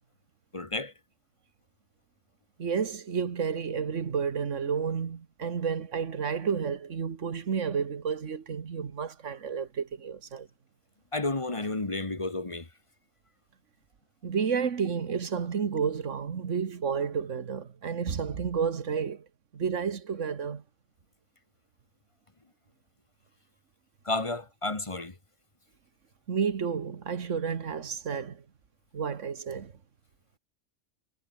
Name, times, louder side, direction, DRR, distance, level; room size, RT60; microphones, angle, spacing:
voice 1, 0.5-0.9 11.1-12.7 24.0-25.2, left 2 dB, 25° left, 1.7 m, -31 dB
voice 2, 2.6-10.5 14.2-19.3 19.5-20.6 26.3-28.4 28.9-29.7, right 6 dB, 90° right, 1.8 m, -31 dB
omnidirectional pair, 1.2 m